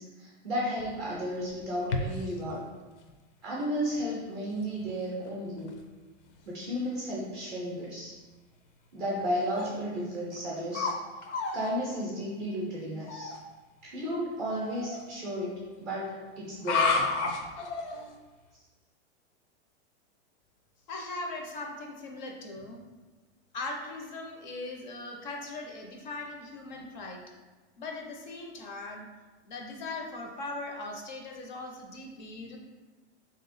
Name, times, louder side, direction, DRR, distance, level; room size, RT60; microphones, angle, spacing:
voice 1, 0.0-2.7 3.4-5.7 6.4-8.2 8.9-11.0 11.5-13.3 13.9-17.0, equal, 15° right, -5 dB, 0.4 m, -33 dB
sound 1, 0.8-2.4 3.1-3.2 3.9-4.0 4.6-4.9 5.3-5.4 5.6-5.8 6.4-6.5 9.5-9.7 10.3-11.0 11.2-11.7 13.1-13.4 14.5-15.0 16.5-18.1, left 4 dB, 80° left, 0.7 m, -31 dB
voice 2, 20.9-22.8 23.5-27.2 27.8-29.1 29.4-32.6, left 2 dB, 40° left, 1 dB, 0.5 m, -39 dB
3.3 x 2.8 x 4.0 m, 1.3 s
supercardioid pair, 175°, 34 cm